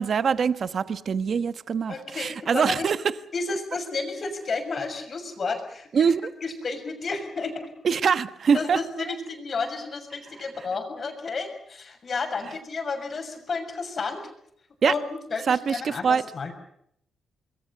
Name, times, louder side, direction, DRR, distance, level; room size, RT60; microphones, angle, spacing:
voice 1, 0.0-3.0 5.9-6.2 7.8-8.8 14.8-14.9 15.5-16.2, right 6 dB, 55° right, 1.2 m, -23 dB
voice 2, 1.9-2.8 3.3-6.1 6.4-7.7 8.5-14.2 14.8-16.5, left 4 dB, 45° left, 6.6 m, -31 dB
26.5 x 22.0 x 6.8 m
cardioid pair, 110°, 0 cm